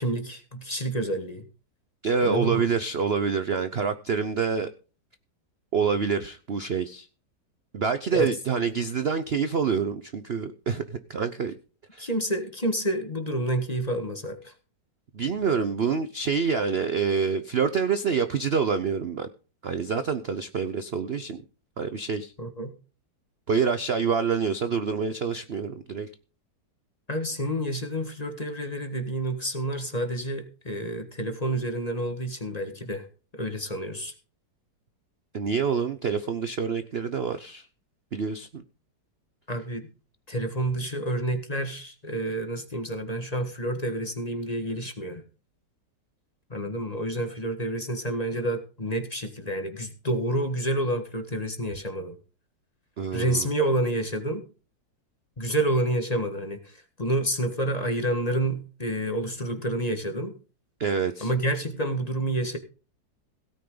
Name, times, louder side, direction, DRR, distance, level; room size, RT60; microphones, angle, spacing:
voice 1, 0.0-1.4 2.2-2.7 8.1-8.3 12.0-14.5 22.4-22.7 27.1-33.1 33.3-34.1 39.5-39.9 40.3-45.2 46.5-52.2 53.1-54.4 55.4-60.3 61.2-62.6, right 1 dB, 25° left, 1.6 m, -29 dB
voice 2, 2.0-4.7 5.7-7.1 7.7-11.5 11.9-12.1 15.1-19.3 19.6-21.4 21.8-22.3 23.5-26.1 35.3-37.7 38.1-38.6 53.0-53.5 60.8-61.3, right 6 dB, 50° right, 0.8 m, -27 dB
17.0 x 9.5 x 3.9 m
omnidirectional pair, 1.9 m